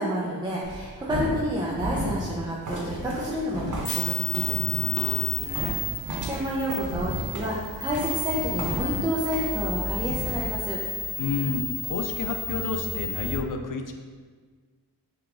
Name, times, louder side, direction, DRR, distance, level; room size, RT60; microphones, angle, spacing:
voice 1, 0.0-4.6 6.2-10.8, equal, 10° right, -5 dB, 0.4 m, -29 dB
sound 1, 0.6-10.5, equal, 75° right, 1.1 m, -34 dB
sound 2, 2.6-9.0 9.3-9.8, right 2 dB, 50° right, 0.9 m, -38 dB
sound 3, 3.8-13.4, left 2 dB, 35° left, 0.8 m, -32 dB
voice 2, 4.7-5.8 11.2-13.9, left 4 dB, 55° left, 4 dB, 0.4 m, -31 dB
4.9 x 2.3 x 3.6 m, 1.5 s
wide cardioid pair, 155°, 39 cm